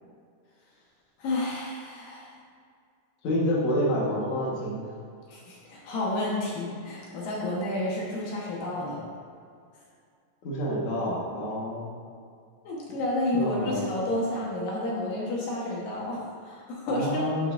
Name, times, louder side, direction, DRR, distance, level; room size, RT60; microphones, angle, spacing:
voice 1, 1.2-2.3 5.3-9.0 12.6-17.3, left 1 dB, 75° left, -4 dB, 3.0 m, -30 dB
voice 2, 3.2-4.9 10.4-12.0 13.3-13.9 16.9-17.5, equal, 60° left, -5 dB, 2.7 m, -28 dB
11.5 x 7.7 x 2.6 m, 2.3 s
omnidirectional pair, 4.0 m